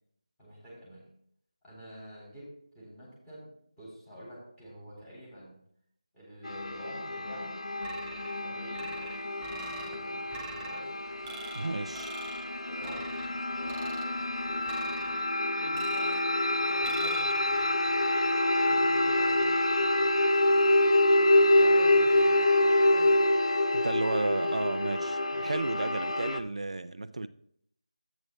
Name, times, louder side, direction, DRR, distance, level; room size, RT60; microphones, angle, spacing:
voice 1, 0.4-1.0 1.6-3.5 3.8-5.6 6.1-7.5 8.4-10.2 10.6-10.9 12.6-14.9 15.5-16.2 16.7-17.9 18.6-19.6 21.5-22.4 22.9-23.1, equal, 10° left, 3.1 m, -48 dB
sound 1, 6.4-26.4, left 1 dB, 65° left, 0.6 m, -26 dB
sound 2, 7.8-8.4 8.7-10.0 10.3-10.8 11.2-11.7 11.9-12.4 12.8-13.3 13.7-14.1 14.7-15.2 15.7-16.3 16.8-17.3, right 3 dB, 10° right, 0.4 m, -44 dB
voice 2, 11.5-12.1 23.7-27.3, right 2 dB, 70° right, 0.4 m, -33 dB
12.5 x 8.9 x 2.2 m
figure-of-eight pair, 165°, 4 cm